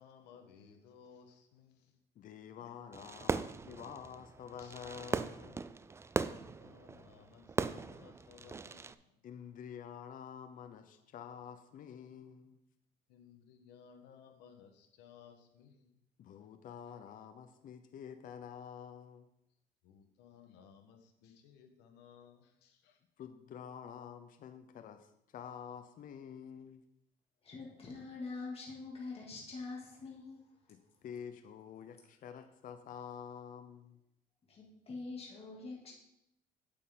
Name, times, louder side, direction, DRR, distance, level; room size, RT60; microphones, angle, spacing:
voice 1, 0.0-2.0 2.6-3.1 4.6-4.8 5.8-9.2 12.2-12.3 13.1-16.0 16.4-16.5 19.8-23.0, left 7 dB, 90° left, 5 dB, 1.3 m, -60 dB
voice 2, 2.2-5.7 9.2-12.6 16.2-19.3 23.2-26.8 30.7-34.0, left 8 dB, 55° left, 9 dB, 0.7 m, -48 dB
Fireworks, 2.9-8.9, right 4 dB, 15° right, 0.3 m, -39 dB
voice 3, 27.4-30.6 34.5-35.9, left 3 dB, 35° left, -3 dB, 2.5 m, -45 dB
8.4 x 8.3 x 3.8 m, 0.82 s
cardioid pair, 110°, 17 cm